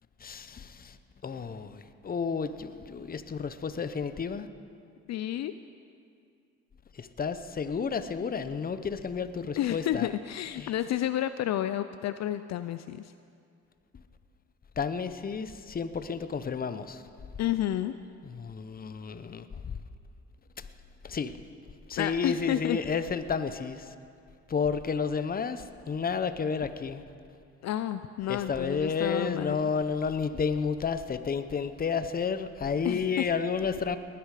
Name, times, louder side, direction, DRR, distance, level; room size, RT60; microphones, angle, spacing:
voice 1, 0.2-1.0 1.2-4.5 6.9-10.1 10.6-10.7 14.8-17.0 18.2-19.8 20.6-20.7 21.0-21.4 21.9-23.9 24.5-27.0 28.3-34.0, left 5 dB, 30° left, 11 dB, 0.7 m, -31 dB
voice 2, 5.1-5.5 9.6-13.1 17.4-17.9 22.0-22.8 27.6-29.7 32.8-33.3, left 12 dB, 60° left, 12 dB, 0.5 m, -30 dB
19.5 x 10.0 x 4.9 m, 2.4 s
cardioid pair, 90°, 30 cm